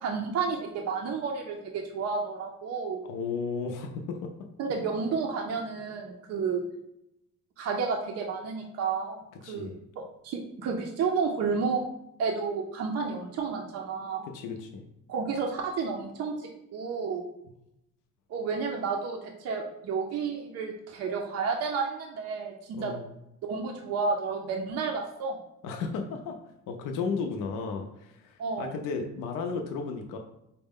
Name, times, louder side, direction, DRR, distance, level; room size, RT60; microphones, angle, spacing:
voice 1, 0.0-3.0 4.6-6.6 7.6-9.2 9.5-9.7 10.0-11.9 12.2-14.3 15.1-17.2 18.3-23.0 23.5-25.4 28.4-28.7, right 5 dB, 50° right, 1 dB, 0.4 m, -31 dB
voice 2, 3.0-4.3 9.4-9.8 14.3-14.9 22.7-23.1 25.6-26.4 26.7-30.2, left 5 dB, 70° left, 3 dB, 0.5 m, -34 dB
4.4 x 2.1 x 3.5 m, 0.82 s
cardioid pair, 175°, 33 cm